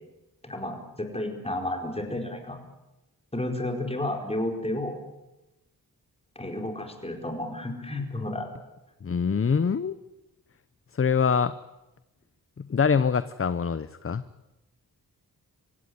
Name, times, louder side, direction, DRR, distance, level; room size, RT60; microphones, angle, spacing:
voice 1, 0.4-2.6 3.3-5.0 6.3-8.5, left 1 dB, 15° left, 3 dB, 4.8 m, -32 dB
voice 2, 9.0-10.0 10.9-11.5 12.6-14.2, left 6 dB, 35° left, 14 dB, 0.7 m, -24 dB
25.5 x 17.0 x 9.6 m, 1.0 s
wide cardioid pair, 90°, 36 cm